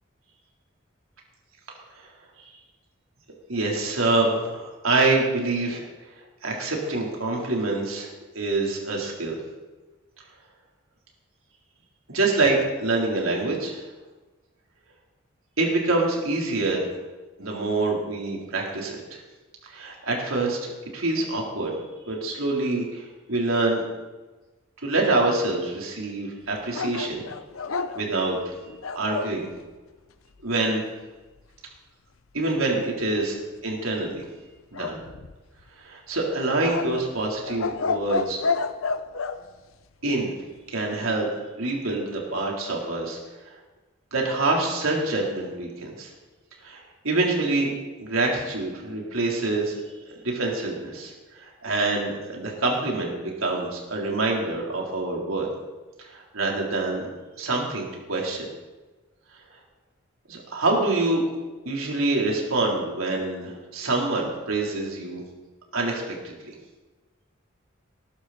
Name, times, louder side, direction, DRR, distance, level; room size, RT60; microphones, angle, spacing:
voice 1, 3.5-5.8 6.4-8.1 8.4-9.4 12.1-13.8 15.6-16.9 17.4-19.2 19.7-21.8 22.1-23.8 24.8-27.2 27.9-28.5 29.0-29.5 30.4-30.8 32.3-34.2 34.7-35.0 35.8-38.4 40.0-40.3 40.7-41.3 41.6-43.2 44.1-46.1 46.6-47.7 48.0-49.8 50.2-55.5 56.0-57.1 57.4-58.5 60.3-61.2 61.7-65.2 65.7-66.5, right 2 dB, 85° right, -1 dB, 3.8 m, -26 dB
sound 1, 26.7-29.4 34.7-35.6 36.6-39.4, left 4 dB, 85° left, 0.8 m, -29 dB
20.0 x 11.5 x 4.3 m, 1.2 s
head